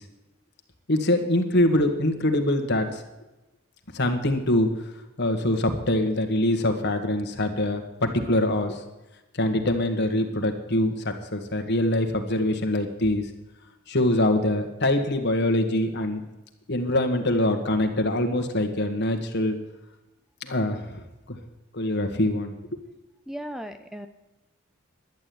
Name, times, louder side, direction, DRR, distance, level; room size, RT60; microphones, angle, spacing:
voice 1, 0.9-3.0 3.9-4.7 5.2-8.8 9.4-13.3 13.9-16.2 16.7-19.6 20.4-21.0 21.3-21.4 21.7-22.5, left 1 dB, 55° left, 6 dB, 1.7 m, -24 dB
voice 2, 23.3-24.1, equal, ahead, 9 dB, 0.5 m, -36 dB
11.5 x 8.6 x 9.5 m, 1.0 s
head